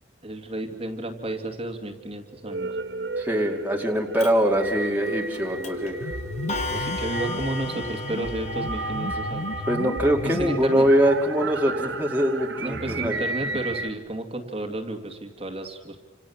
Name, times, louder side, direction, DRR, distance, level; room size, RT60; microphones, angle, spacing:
voice 1, 0.2-2.7 6.7-9.5 10.2-10.9 12.6-16.0, right 1 dB, 30° right, 3 dB, 2.3 m, -32 dB
sound 1, 2.4-13.9, right 3 dB, 70° right, 1.6 m, -33 dB
voice 2, 3.2-6.0 9.7-13.3, equal, 10° right, 0 dB, 2.4 m, -23 dB
Clock, 4.2-4.3 5.3-5.4 5.6-5.9 6.5-9.7, left 2 dB, 35° left, 3.0 m, -34 dB
sound 2, 6.0-11.0, left 1 dB, 85° left, 1.5 m, -35 dB
28.5 x 27.0 x 7.2 m, 1.2 s
head